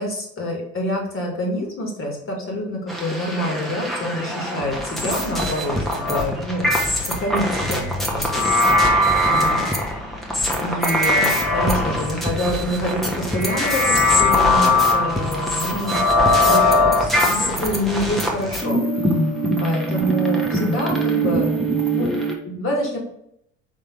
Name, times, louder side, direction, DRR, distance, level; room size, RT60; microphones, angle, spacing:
voice 1, 0.0-7.9 8.1-8.7 9.3-9.7 9.9-10.2 10.6-16.1 16.5-19.3 19.6-21.5 21.9-22.1 22.5-23.0, equal, 35° left, -1 dB, 1.9 m, -27 dB
sound 1, 2.9-22.4, left 1 dB, ahead, 1.1 m, -21 dB
4.5 x 3.2 x 3.7 m, 0.74 s
hypercardioid pair, 55°, 35 cm